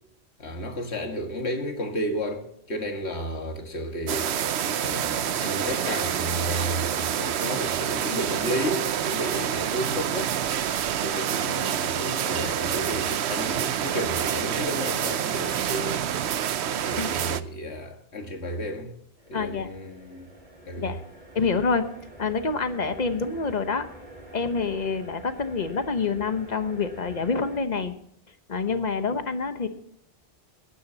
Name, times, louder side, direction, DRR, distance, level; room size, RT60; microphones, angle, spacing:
voice 1, 0.4-4.5 4.8-10.3 11.0-16.0 16.9-18.9 19.3-20.3 20.7-20.9, equal, 85° left, 2.0 m, -32 dB
sound 1, 4.1-17.4, right 9 dB, 85° right, 0.9 m, -27 dB
sound 2, 19.2-27.6, right 1 dB, 45° right, 3.2 m, -47 dB
voice 2, 19.3-19.7 20.8-21.0 21.3-21.9 22.2-23.8 24.3-27.9 28.5-29.7, left 4 dB, 45° left, 1.1 m, -27 dB
20.5 x 10.0 x 2.8 m
omnidirectional pair, 1.1 m